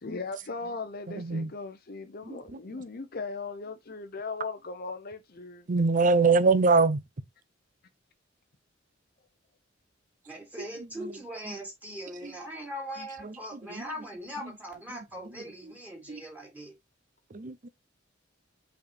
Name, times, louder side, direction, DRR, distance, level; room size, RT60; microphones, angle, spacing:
voice 1, 0.0-5.6, left 4 dB, 50° left, 0.8 m, -38 dB
voice 2, 1.2-1.5 5.7-7.0 16.1-16.2 17.3-17.7, right 4 dB, 40° right, 0.6 m, -22 dB
voice 3, 10.3-16.8, equal, 10° right, 2.8 m, -40 dB
5.7 x 4.4 x 4.3 m
head